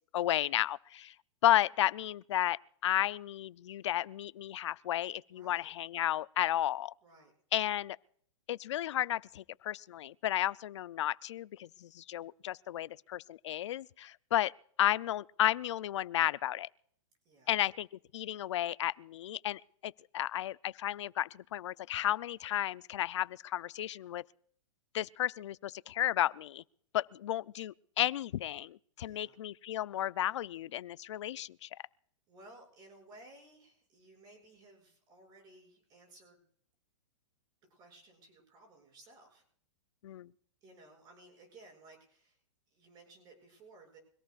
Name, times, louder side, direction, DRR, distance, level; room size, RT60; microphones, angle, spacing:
voice 1, 0.1-1.1 1.4-6.9 7.5-8.0 8.5-14.5 14.8-16.7 17.5-17.9 18.1-24.2 24.9-26.6 26.9-31.7 40.0-40.3, left 12 dB, 65° left, 0.5 m, -33 dB
voice 2, 5.3-5.7 7.0-7.3 17.2-17.5 29.0-29.4 32.3-36.4 37.7-39.4 40.6-42.4 42.7-44.0, right 2 dB, 25° right, 6.7 m, -58 dB
24.5 x 18.0 x 2.5 m
hypercardioid pair, 150°, 16 cm